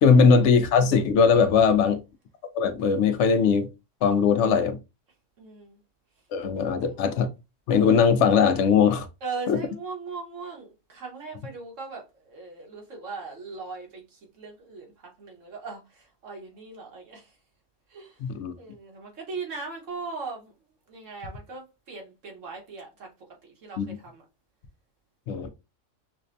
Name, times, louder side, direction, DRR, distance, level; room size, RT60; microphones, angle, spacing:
voice 1, 0.0-2.0 2.5-3.7 4.0-4.8 6.3-7.3 7.7-9.1 9.5-9.6 18.2-18.6 23.8-23.9 25.3-25.5, left 6 dB, 70° left, 0.9 m, -20 dB
voice 2, 5.4-5.8 6.6-7.0 9.2-17.4 17.9-18.2 18.6-20.5 20.9-23.1 23.4-24.2 25.4-25.5, right 4 dB, 85° right, 1.6 m, -39 dB
5.5 x 2.1 x 2.6 m
omnidirectional pair, 1.3 m